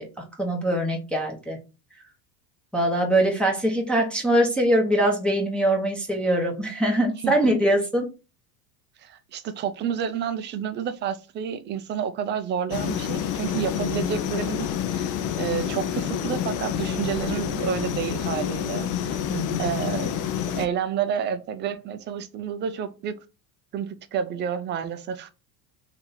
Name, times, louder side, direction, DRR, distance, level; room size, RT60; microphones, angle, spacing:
voice 1, 0.0-1.6 2.7-8.1 19.3-19.7, right 1 dB, ahead, 0.8 m, -23 dB
voice 2, 9.0-19.2 19.6-20.3 20.5-23.2 23.7-25.3, right 8 dB, 25° right, 0.3 m, -30 dB
sound 1, 12.7-20.7, left 9 dB, 40° left, 0.4 m, -28 dB
3.0 x 2.8 x 3.8 m
supercardioid pair, 105°, 50 cm